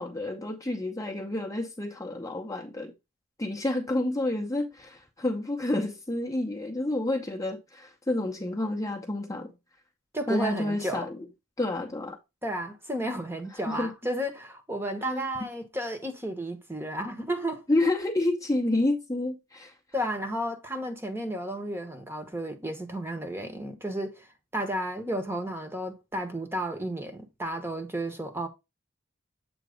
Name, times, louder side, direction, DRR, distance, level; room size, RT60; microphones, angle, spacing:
voice 1, 0.0-2.9 3.4-9.5 10.3-11.2 11.6-12.2 13.7-13.9 15.1-15.2 17.7-19.7, left 2 dB, 15° left, 0.7 m, -29 dB
voice 2, 10.1-11.1 12.4-17.6 19.9-24.3 24.5-28.5, right 1 dB, 10° right, 0.9 m, -32 dB
7.8 x 2.9 x 5.0 m
head